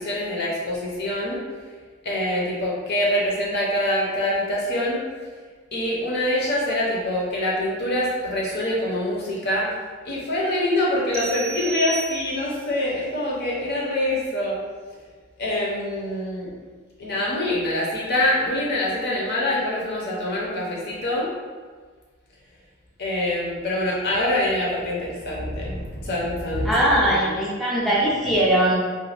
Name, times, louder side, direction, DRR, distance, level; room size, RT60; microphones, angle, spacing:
voice 1, 0.0-1.4 2.0-5.0 5.7-9.7 10.0-14.6 15.4-16.5 17.0-21.3 23.0-27.3, left 1 dB, 55° left, -5 dB, 0.7 m, -25 dB
sound 1, 11.1-12.7, right 5 dB, 90° right, 0.5 m, -33 dB
voice 2, 26.6-28.7, right 1 dB, ahead, -8 dB, 0.5 m, -20 dB
2.5 x 2.2 x 3.2 m, 1.5 s
head